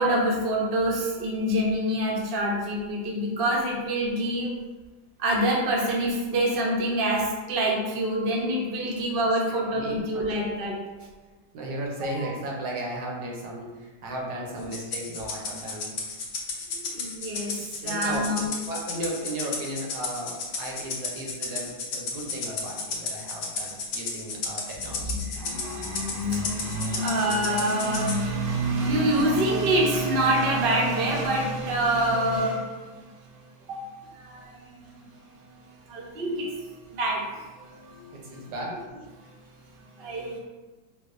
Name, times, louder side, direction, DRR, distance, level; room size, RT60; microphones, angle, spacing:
voice 1, 0.0-4.5 5.2-10.8 12.0-12.3 14.5-14.7 16.7-18.5 24.8-38.5 39.2-40.4, right 1 dB, 65° right, -3 dB, 0.5 m, -27 dB
voice 2, 11.5-15.9 16.7-16.8 17.8-18.3 18.7-25.2 37.9-38.8, right 1 dB, 85° right, -2 dB, 1.4 m, -35 dB
Rattle (instrument), 14.7-28.2, left 4 dB, 70° left, 1.1 m, -33 dB
4.9 x 2.0 x 2.4 m, 1.3 s
omnidirectional pair, 1.8 m